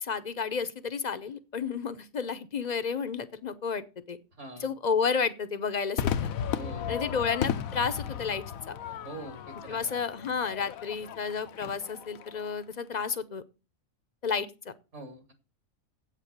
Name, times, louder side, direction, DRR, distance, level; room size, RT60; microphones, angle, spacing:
voice 1, 0.0-4.2 4.6-6.3 6.9-8.4 9.7-13.4 14.2-14.5, left 6 dB, 40° left, 13 dB, 0.7 m, -31 dB
voice 2, 4.4-4.7 6.5-7.2 9.0-9.9 14.9-15.3, right 2 dB, 60° right, 6 dB, 2.5 m, -44 dB
Crowd / Fireworks, 6.0-12.5, left 9 dB, 85° left, 1.2 m, -35 dB
8.2 x 7.6 x 6.6 m, 0.32 s
omnidirectional pair, 1.4 m